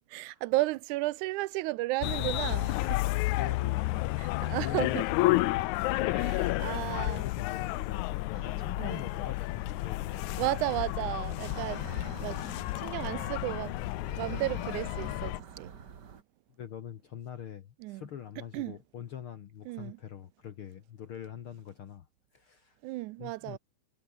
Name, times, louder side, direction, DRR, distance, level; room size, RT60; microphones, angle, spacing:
voice 1, 0.1-3.0 4.2-5.1 6.1-7.3 8.8-9.0 10.4-11.9 12.2-12.4 12.8-13.7 14.2-15.7 17.8-18.1 18.5-18.8 19.7-20.0 22.8-23.6, right 19 dB, 85° right, 2.1 m, -33 dB
sound 1, 2.0-15.4, left 19 dB, 80° left, 2.0 m, -31 dB
voice 2, 3.0-4.2 4.6-5.6 5.9-10.4 16.6-22.1 22.3-22.8 23.2-23.6, left 9 dB, 55° left, 1.7 m, -44 dB
sound 2, 8.3-16.2, right 7 dB, 40° right, 1.9 m, -48 dB
omnidirectional pair, 3.5 m